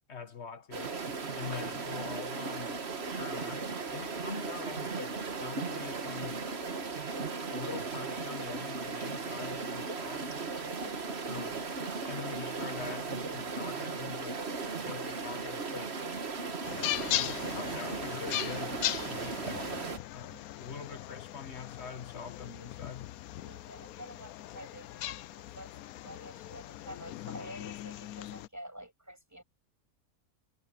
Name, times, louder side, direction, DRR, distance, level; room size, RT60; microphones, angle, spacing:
voice 1, 0.1-0.9 1.4-6.5 7.5-10.3 11.3-11.7 12.1-14.4 14.8-16.0 17.0-23.1, left 6 dB, 50° left, 1.9 m, -44 dB
sound 1, 0.7-20.0, right 4 dB, 50° right, 1.7 m, -37 dB
sound 2, 16.6-28.5, left 14 dB, 85° left, 1.1 m, -39 dB
voice 2, 23.4-25.7 26.0-29.4, equal, 10° right, 7.6 m, -49 dB
omnidirectional pair, 1.5 m